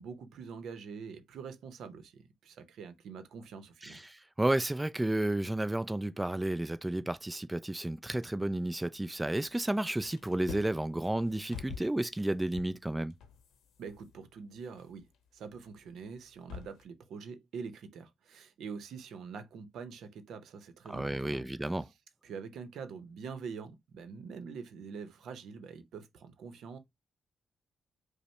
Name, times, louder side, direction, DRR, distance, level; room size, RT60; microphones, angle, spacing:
voice 1, 0.0-4.0 13.8-21.5 22.2-26.8, right 5 dB, 80° right, 0.7 m, -45 dB
voice 2, 3.8-13.1 20.9-21.9, right 1 dB, 10° right, 0.3 m, -32 dB
sound 1, 8.2-9.6 9.8-16.8, left 6 dB, 85° left, 0.7 m, -49 dB
5.2 x 2.1 x 3.1 m
cardioid pair, 75°, 0 cm